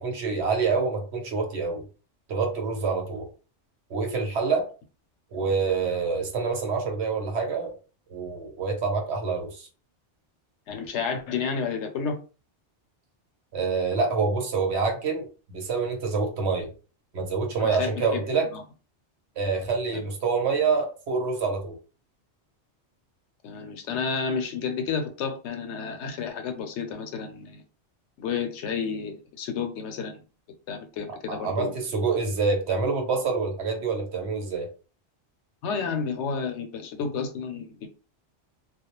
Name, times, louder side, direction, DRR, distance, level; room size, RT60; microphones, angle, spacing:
voice 1, 0.0-1.9 2.3-3.3 3.9-4.7 5.3-7.7 8.1-9.7 13.5-16.7 17.1-18.5 19.4-21.7 31.3-34.7, right 4 dB, 70° right, 2 dB, 1.0 m, -26 dB
voice 2, 10.7-12.2 17.6-18.2 18.5-18.6 23.4-27.6 28.2-30.2 30.7-31.8 35.6-37.9, left 5 dB, 80° left, 6 dB, 0.9 m, -31 dB
2.3 x 2.1 x 2.9 m, 0.35 s
omnidirectional pair, 1.2 m